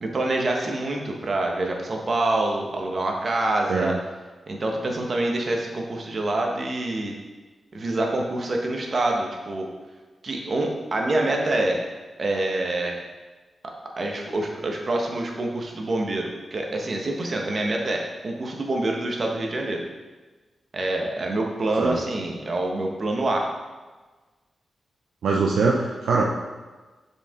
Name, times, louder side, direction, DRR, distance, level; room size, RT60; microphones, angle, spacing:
voice 1, 0.0-3.9 4.5-7.1 7.7-9.7 10.2-11.8 12.2-13.0 14.0-19.8 20.7-23.5, right 2 dB, 55° right, 1 dB, 1.4 m, -26 dB
voice 2, 25.2-26.2, right 4 dB, 80° right, -1 dB, 0.6 m, -22 dB
7.3 x 5.2 x 3.8 m, 1.3 s
supercardioid pair, 40°, 0 cm